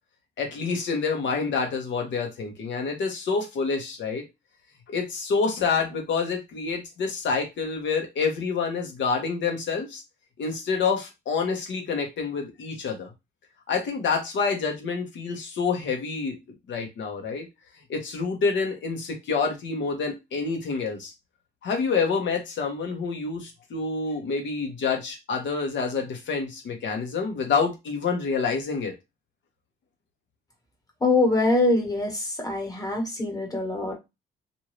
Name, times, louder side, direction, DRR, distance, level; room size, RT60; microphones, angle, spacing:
voice 1, 0.4-4.2 4.9-10.0 10.4-13.1 13.7-16.4 16.7-17.5 17.9-21.1 21.6-28.9, left 5 dB, 65° left, 3 dB, 1.1 m, -27 dB
voice 2, 31.0-33.9, left 2 dB, 20° left, 0 dB, 1.3 m, -24 dB
2.7 x 2.7 x 3.1 m, 0.23 s
cardioid pair, 90°, 20 cm